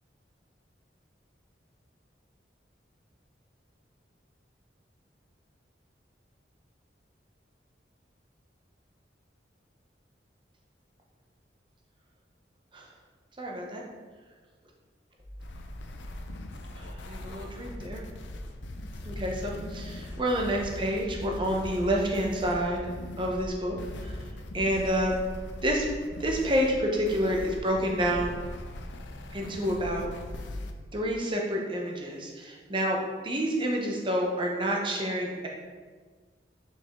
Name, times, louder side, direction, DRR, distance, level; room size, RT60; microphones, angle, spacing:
voice 1, 13.4-13.8 16.8-18.0 19.1-22.8 23.2-23.8 24.0-24.1 24.5-25.2 25.6-25.9 26.2-28.4 29.3-30.1 30.9-33.0 33.2-35.5, equal, 25° right, 0 dB, 0.8 m, -28 dB
sound 1, 15.2-28.0, right 1 dB, 35° left, 0.9 m, -48 dB
sound 2, 15.4-30.7, left 1 dB, 85° left, 0.5 m, -40 dB
5.5 x 4.9 x 3.6 m, 1.4 s
head